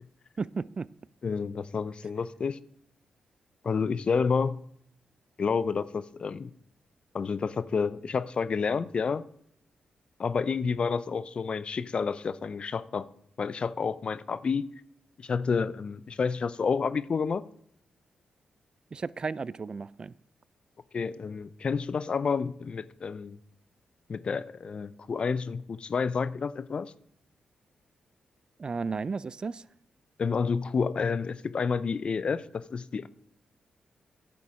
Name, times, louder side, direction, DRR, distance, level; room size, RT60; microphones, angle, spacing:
voice 1, 0.4-0.9 18.9-20.1 28.6-29.6, right 4 dB, 45° right, 0.4 m, -33 dB
voice 2, 1.2-2.6 3.6-4.6 5.4-6.5 7.1-9.2 10.2-13.1 13.4-14.7 15.2-17.4 20.9-23.4 24.1-26.9 30.2-33.1, left 5 dB, 55° left, 0.5 m, -29 dB
10.0 x 7.1 x 4.9 m
supercardioid pair, 50°, 2 cm